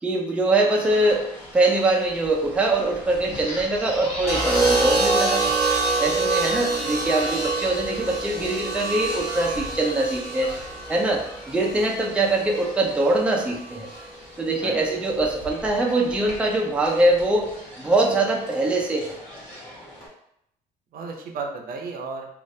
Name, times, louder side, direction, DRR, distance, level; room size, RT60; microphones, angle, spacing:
voice 1, 0.0-5.4 6.0-10.5 10.9-13.9 14.4-17.5 17.8-19.2, right 2 dB, 5° right, -1 dB, 0.4 m, -23 dB
sound 1, 0.7-20.1, left 1 dB, 55° left, 1.3 m, -40 dB
sound 2, 4.3-12.4 13.6-14.0, right 3 dB, 15° left, 1.3 m, -25 dB
voice 2, 5.9-6.3 14.6-15.1 20.9-22.3, right 4 dB, 60° right, 2 dB, 0.6 m, -35 dB
2.6 x 2.4 x 3.2 m, 0.76 s
cardioid pair, 110°, 17 cm